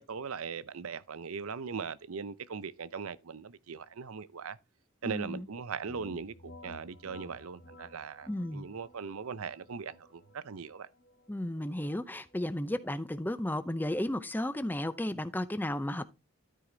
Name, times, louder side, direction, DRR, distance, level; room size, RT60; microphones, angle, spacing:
voice 1, 0.0-4.6 5.0-10.9, right 5 dB, 75° right, 0.6 m, -40 dB
voice 2, 5.0-5.5 8.3-8.7 11.3-16.1, left 1 dB, 10° left, 0.5 m, -34 dB
sound 1, 5.9-15.5, left 2 dB, 50° left, 1.1 m, -56 dB
13.0 x 4.8 x 3.9 m
head